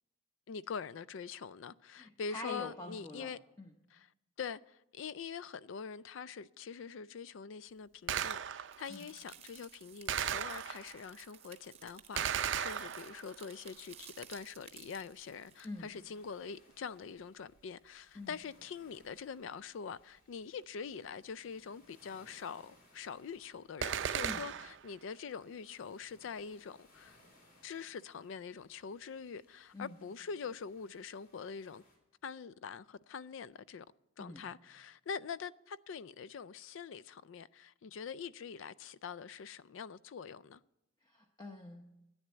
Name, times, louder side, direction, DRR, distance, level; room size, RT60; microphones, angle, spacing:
voice 1, 0.5-3.4 3.9-4.1 4.4-27.2 27.6-31.8 32.2-33.9 34.2-40.6, left 6 dB, 75° left, 0.4 m, -44 dB
voice 2, 1.9-3.3 3.6-3.7 8.9-9.1 15.6-15.9 18.1-18.4 24.2-24.4 29.7-30.0 34.2-34.4 41.0-41.9, left 2 dB, 20° left, 0.8 m, -45 dB
Gunshot gunfire, 8.1-8.9 10.1-11.1 12.2-13.4 23.8-24.9, right 9 dB, 65° right, 0.5 m, -36 dB
sound 1, 8.7-15.7, right 9 dB, 30° right, 0.7 m, -56 dB
sound 2, 15.0-32.0, left 1 dB, 45° left, 3.4 m, -67 dB
10.5 x 9.4 x 8.0 m
head